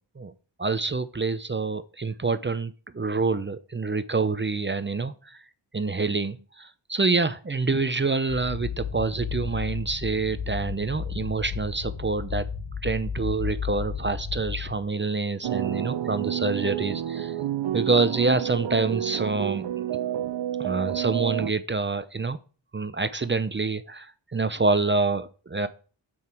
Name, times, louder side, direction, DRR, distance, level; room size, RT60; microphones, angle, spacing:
voice 1, 0.6-5.4 5.7-12.5 12.8-17.3 17.7-19.9 20.6-22.4 22.7-25.7, right 3 dB, 25° right, 0.7 m, -27 dB
sound 1, 8.3-14.8, left 6 dB, 85° left, 2.2 m, -33 dB
sound 2, 15.4-21.5, right 12 dB, 65° right, 0.7 m, -29 dB
9.2 x 8.1 x 4.5 m
cardioid pair, 80°, 47 cm